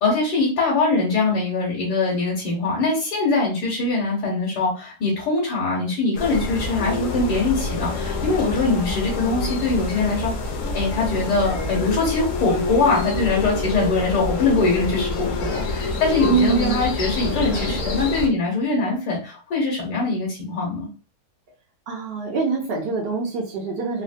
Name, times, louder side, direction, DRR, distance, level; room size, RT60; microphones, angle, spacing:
voice 1, 0.0-10.3 10.7-20.9, left 3 dB, 85° left, -4 dB, 1.5 m, -22 dB
sound 1, 6.1-18.3, left 3 dB, 65° left, 0.8 m, -27 dB
voice 2, 16.3-16.8 17.5-17.8 21.9-24.0, right 5 dB, 90° right, -1 dB, 0.5 m, -24 dB
3.6 x 2.1 x 2.5 m, 0.36 s
omnidirectional pair, 1.7 m